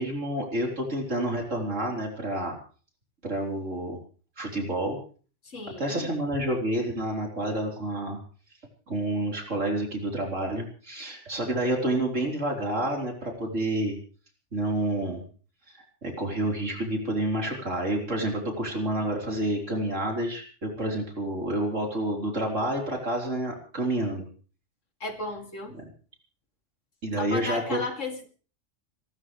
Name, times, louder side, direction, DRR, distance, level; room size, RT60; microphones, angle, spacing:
voice 1, 0.0-2.5 3.2-4.0 4.4-5.0 5.8-8.2 8.9-14.0 14.5-15.2 15.7-24.3 25.7-25.9 27.0-27.8, right 1 dB, 85° right, 0 dB, 4.5 m, -29 dB
voice 2, 5.4-6.1 25.0-25.8 27.2-28.3, left 3 dB, 80° left, 4 dB, 3.1 m, -34 dB
30.0 x 13.5 x 3.3 m, 0.40 s
omnidirectional pair, 1.3 m